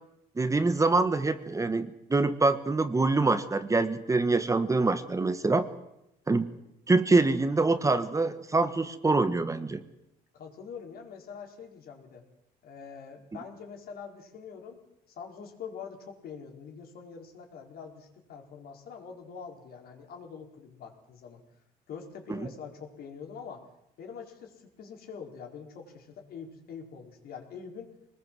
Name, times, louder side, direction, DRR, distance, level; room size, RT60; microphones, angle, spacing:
voice 1, 0.4-5.7 6.3-6.5 6.9-9.8 22.4-22.5, right 3 dB, 20° right, 11 dB, 1.4 m, -25 dB
voice 2, 10.3-12.2 12.6-14.8 15.1-21.4 21.9-23.7 24.0-27.9, left 6 dB, 65° left, 3 dB, 4.7 m, -44 dB
24.0 x 20.0 x 7.7 m, 0.85 s
cardioid pair, 110°, 17 cm